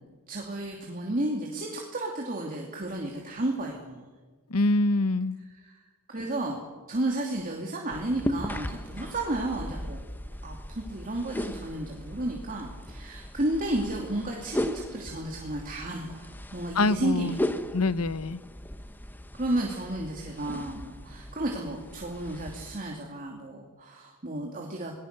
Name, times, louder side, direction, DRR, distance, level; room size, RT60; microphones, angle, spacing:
voice 1, 0.3-4.1 5.6-5.7 6.1-6.6 6.9-10.0 10.4-17.4 19.4-24.9, right 1 dB, 40° right, 0 dB, 2.7 m, -32 dB
voice 2, 4.5-5.4 16.7-17.4 17.7-18.4, left 2 dB, 80° left, 15 dB, 0.9 m, -25 dB
sound 1, 7.9-22.8, equal, 10° left, 1.0 m, -37 dB
28.0 x 19.5 x 6.7 m, 1.4 s
head